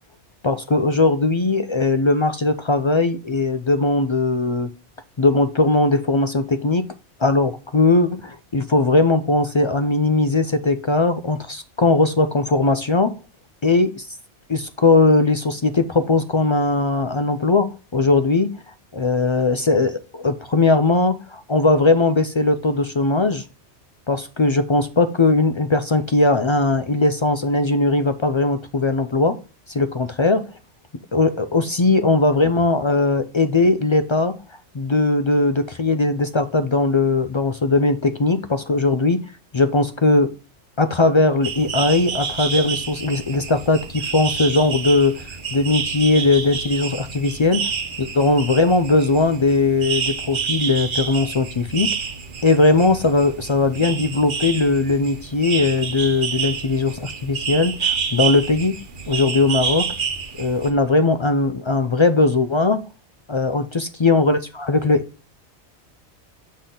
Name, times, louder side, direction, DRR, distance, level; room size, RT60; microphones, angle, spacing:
voice 1, 0.4-4.7 5.2-6.9 7.2-13.1 13.6-14.1 14.5-18.5 18.9-23.4 24.1-29.4 29.7-30.5 31.1-34.4 34.7-39.2 39.5-40.3 40.8-47.6 48.0-51.9 52.4-58.7 59.1-59.9 60.4-62.8 63.3-65.0, left 3 dB, 50° left, 0.3 m, -19 dB
sound 1, 41.4-60.7, right 6 dB, 50° right, 1.0 m, -28 dB
8.3 x 4.0 x 3.8 m
omnidirectional pair, 1.2 m